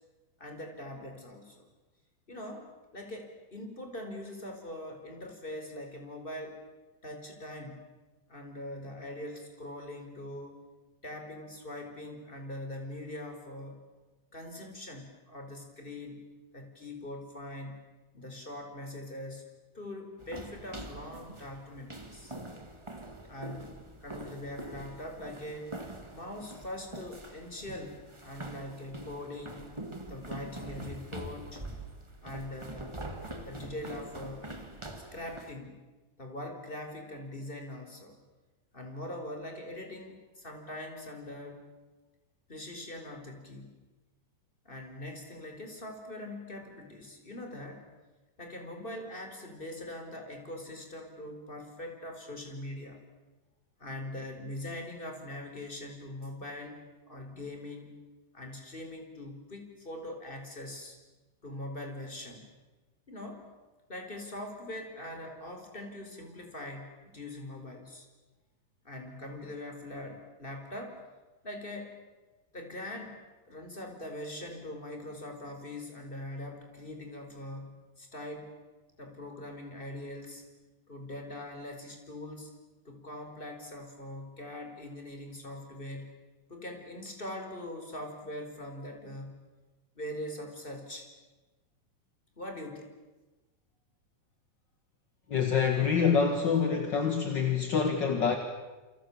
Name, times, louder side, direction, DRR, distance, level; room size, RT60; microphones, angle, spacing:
voice 1, 0.4-1.7 2.3-6.6 7.0-7.8 8.3-10.6 11.0-13.8 14.3-16.2 16.5-17.8 18.1-19.5 19.7-22.3 23.3-25.7 26.1-29.7 30.1-31.6 32.2-32.9 33.4-34.5 35.1-35.8 36.2-38.2 38.7-41.6 42.5-43.8 44.6-47.8 48.4-53.0 53.8-56.8 57.1-58.0 58.3-61.0 61.4-62.5 63.1-63.5 63.9-68.1 68.8-71.0 71.4-72.0 72.5-78.5 79.0-80.4 80.9-82.5 82.8-86.2 86.5-89.4 90.0-91.1 92.4-92.9, left 1 dB, 15° left, 4 dB, 4.3 m, -42 dB
sound 1, 20.2-35.5, right 1 dB, 20° right, 0.7 m, -44 dB
voice 2, 95.3-98.4, left 6 dB, 40° left, 5 dB, 1.7 m, -26 dB
28.5 x 27.5 x 7.2 m, 1.2 s
omnidirectional pair, 4.2 m